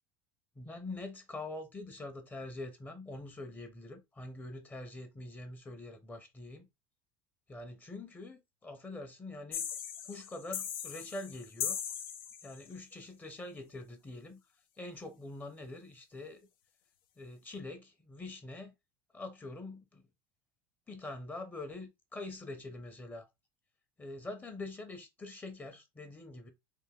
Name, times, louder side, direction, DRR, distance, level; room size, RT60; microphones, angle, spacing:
voice 1, 0.6-6.7 7.5-9.7 10.0-11.8 12.4-14.4 14.8-16.5 17.2-18.7 19.1-20.1 20.9-23.3 24.0-26.5, left 2 dB, 15° left, 0.7 m, -44 dB
sound 1, 9.5-12.8, left 9 dB, 90° left, 0.7 m, -39 dB
3.5 x 2.5 x 3.5 m
supercardioid pair, 125°, 12 cm